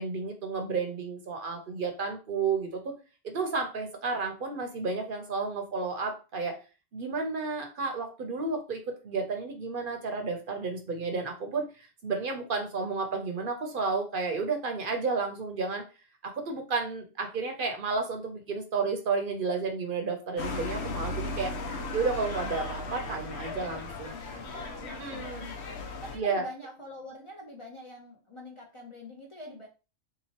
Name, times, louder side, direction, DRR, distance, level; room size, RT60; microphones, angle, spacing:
voice 1, 0.0-2.9 3.2-6.5 6.9-15.8 16.2-21.5 21.9-24.1 24.5-25.5 26.1-26.5, right 4 dB, 55° right, 4 dB, 0.8 m, -32 dB
sound 1, 20.4-26.2, left 3 dB, 75° left, 1.0 m, -36 dB
voice 2, 24.0-29.7, left 1 dB, 35° left, -1 dB, 0.5 m, -45 dB
3.6 x 2.9 x 2.8 m, 0.32 s
omnidirectional pair, 1.2 m